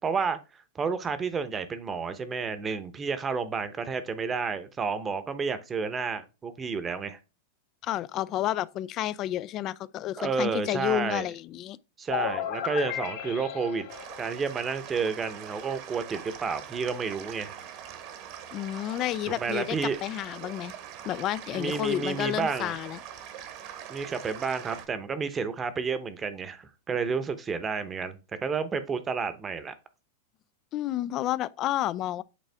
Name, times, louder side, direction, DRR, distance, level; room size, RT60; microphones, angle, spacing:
voice 1, 0.0-7.2 10.2-11.3 12.0-13.9 14.2-17.5 19.4-20.0 21.5-22.7 23.9-29.7, right 5 dB, 20° right, 0.8 m, -31 dB
voice 2, 7.8-11.8 18.5-20.7 21.0-23.0 30.7-32.2, left 13 dB, 40° left, 0.3 m, -30 dB
sound 1, 12.1-14.9, left 9 dB, 60° left, 0.8 m, -34 dB
sound 2, 13.9-24.9, right 9 dB, 50° right, 1.1 m, -43 dB
8.3 x 3.4 x 3.4 m
supercardioid pair, 130°, 0 cm